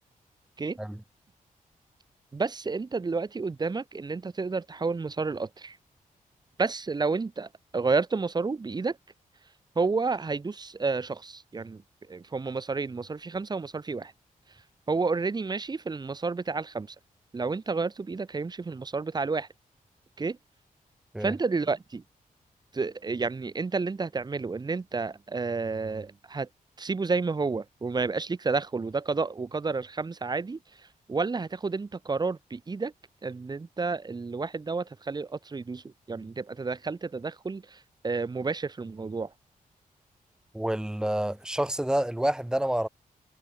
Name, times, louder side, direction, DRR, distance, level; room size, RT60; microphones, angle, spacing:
voice 1, 2.3-5.8 6.6-9.0 9.8-11.8 12.1-14.1 14.9-17.0 17.3-19.5 20.2-20.4 21.2-22.0 22.7-26.5 26.8-30.6 31.1-32.9 33.2-39.3, right 4 dB, 30° right, 5.6 m, -30 dB
voice 2, 40.5-42.9, right 1 dB, 5° right, 0.8 m, -28 dB
wide cardioid pair, 175°, 15 cm